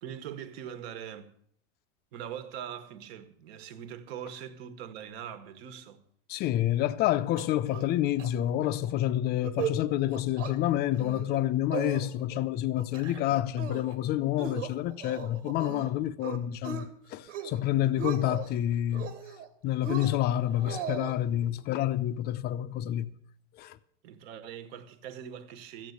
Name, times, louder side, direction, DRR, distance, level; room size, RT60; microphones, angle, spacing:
voice 1, 0.0-1.3 2.1-6.0 24.0-25.9, right 9 dB, 55° right, 1.6 m, -42 dB
voice 2, 6.3-19.1 19.6-23.1 23.5-23.8, left 13 dB, 25° left, 0.6 m, -28 dB
sound 1, 7.4-7.9 8.2-8.3 8.6-8.9 9.3-9.8 10.1-10.5 10.9-11.4 11.7-12.4 12.8-13.2 13.6-14.0 14.4-15.9 16.2-16.8 17.2-17.6 17.8-18.5 18.9-19.5 19.8-21.1, right 8 dB, 85° right, 2.1 m, -37 dB
14.0 x 8.6 x 8.1 m
supercardioid pair, 145°, 36 cm